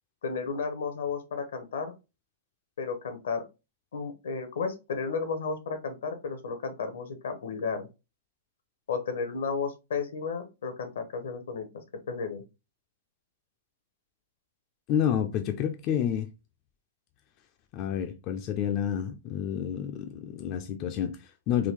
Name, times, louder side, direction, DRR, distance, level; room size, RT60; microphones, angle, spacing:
voice 1, 0.2-1.9 2.8-3.4 3.9-7.9 8.9-11.7 12.1-12.4, left 5 dB, 80° left, 0.9 m, -33 dB
voice 2, 14.9-16.3 17.7-21.7, left 9 dB, 40° left, 0.4 m, -29 dB
3.7 x 2.3 x 3.2 m
hypercardioid pair, 125°, 0 cm